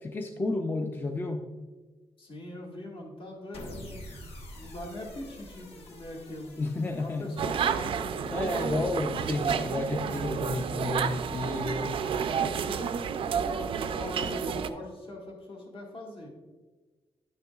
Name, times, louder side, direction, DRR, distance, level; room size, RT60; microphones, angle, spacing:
voice 1, 0.0-1.5 6.6-7.3 8.3-12.0, left 2 dB, 20° left, 4 dB, 0.4 m, -31 dB
voice 2, 2.2-4.1 4.5-6.6 7.0-9.1 12.1-16.3, left 1 dB, 60° left, -1 dB, 1.9 m, -42 dB
sound 1, 3.5-9.9, left 1 dB, 80° left, 1.1 m, -48 dB
sound 2, 7.4-14.7, right 7 dB, 65° right, 0.4 m, -30 dB
9.4 x 6.6 x 2.3 m, 1.3 s
wide cardioid pair, 160°, 10 cm